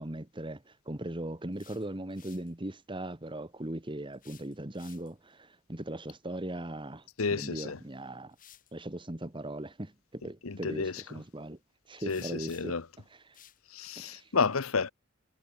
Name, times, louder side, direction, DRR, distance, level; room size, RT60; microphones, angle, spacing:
voice 1, 0.0-7.0 7.3-8.3 8.7-11.6 11.9-12.7 14.0-14.3, right 1 dB, 25° right, 1.6 m, -39 dB
sound 1, 1.5-2.5 4.1-5.3 7.4-7.5 8.3-8.7 12.1-12.9 13.3-13.6, left 11 dB, 40° left, 3.6 m, -57 dB
voice 2, 7.2-7.8 10.4-11.0 12.1-12.8 13.7-14.9, left 4 dB, 90° left, 1.0 m, -31 dB
head